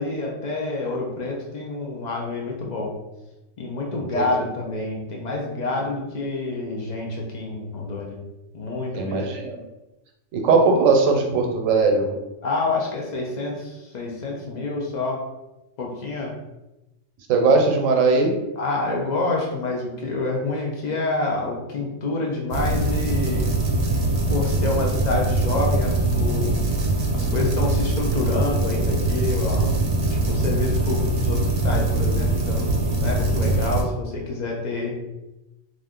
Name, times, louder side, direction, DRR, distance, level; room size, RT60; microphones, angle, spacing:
voice 1, 0.0-2.9 3.6-8.2 8.5-9.3 12.4-15.3 15.8-16.3 18.6-23.5 24.3-26.6 27.1-35.0, left 2 dB, 70° left, -1 dB, 0.4 m, -28 dB
voice 2, 8.9-9.6 10.3-12.1 17.3-18.3, right 4 dB, 80° right, 2 dB, 1.0 m, -19 dB
sound 1, 22.5-33.8, right 2 dB, 60° right, 0.7 m, -22 dB
2.5 x 2.4 x 3.5 m, 0.98 s
omnidirectional pair, 1.4 m